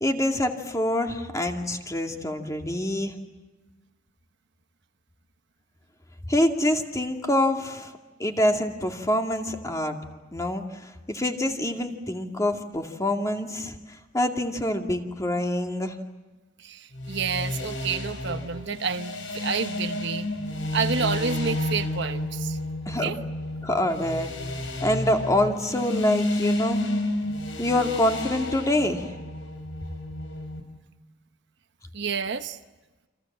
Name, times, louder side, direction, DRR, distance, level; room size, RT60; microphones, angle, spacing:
voice 1, 0.0-3.1 6.3-7.9 8.2-10.0 10.3-10.6 11.1-13.7 14.1-16.0 22.9-23.1 23.6-24.3 24.8-26.8 27.6-29.1, left 1 dB, 15° left, 3 dB, 2.4 m, -25 dB
voice 2, 16.6-20.3 20.7-22.6 23.0-23.2 31.9-32.6, right 5 dB, 65° right, 8 dB, 1.1 m, -29 dB
sound 1, 16.9-30.6, left 1 dB, 80° left, 5.1 m, -31 dB
29.5 x 26.5 x 7.4 m, 1.2 s
head